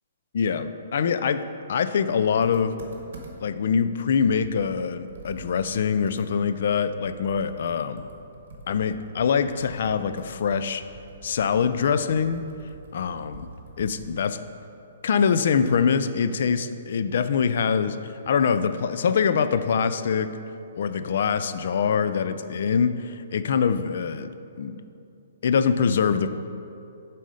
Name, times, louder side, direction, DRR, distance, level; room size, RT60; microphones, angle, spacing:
voice 1, 0.3-2.7 3.4-8.1 8.7-10.8 11.2-12.4 12.9-13.5 13.8-14.4 15.0-20.3 20.8-24.8 25.4-26.3, left 6 dB, 60° left, 11 dB, 0.3 m, -24 dB
Computer keyboard, 2.4-3.6 4.0-4.1 4.4-7.7 8.0-14.5, right 2 dB, 65° right, 1.2 m, -46 dB
7.4 x 4.1 x 5.0 m, 2.6 s
hypercardioid pair, 160°, 0 cm